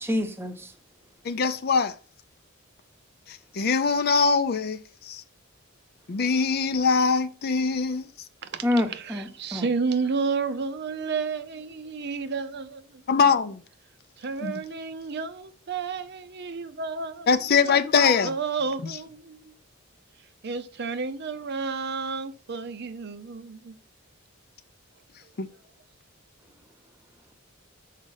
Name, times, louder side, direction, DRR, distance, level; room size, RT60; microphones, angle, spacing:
voice 1, 0.0-0.7 8.6-9.6, left 1 dB, 10° right, 0.9 m, -27 dB
voice 2, 1.2-2.0 3.3-5.2 6.1-8.1 13.1-13.6 14.4-14.6 17.3-18.3 25.4-25.5, left 5 dB, 50° left, 0.5 m, -23 dB
voice 3, 8.4-13.3 14.2-17.3 17.6-17.8 18.2-19.5 20.4-23.7, right 4 dB, 55° right, 0.6 m, -31 dB
6.4 x 5.0 x 5.5 m
head